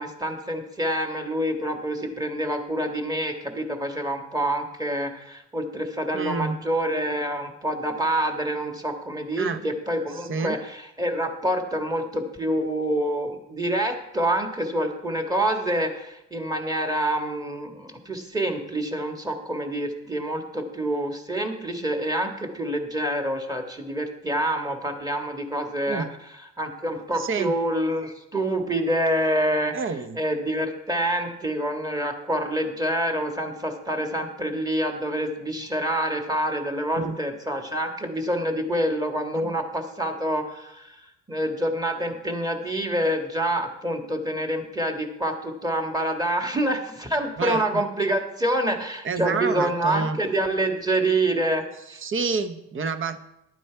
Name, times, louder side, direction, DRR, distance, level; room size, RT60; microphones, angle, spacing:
voice 1, 0.0-10.6 11.0-26.1 26.6-29.7 30.1-40.9 41.3-51.6 51.9-52.0, right 1 dB, 15° right, 4 dB, 1.8 m, -27 dB
voice 2, 6.1-6.6 9.4-9.6 10.1-10.6 25.9-26.1 27.2-27.6 29.7-30.2 37.0-37.2 39.3-39.5 47.4-47.8 49.0-50.2 51.9-53.2, right 4 dB, 45° right, 11 dB, 0.9 m, -29 dB
11.5 x 9.2 x 4.6 m, 0.86 s
cardioid pair, 90°, 30 cm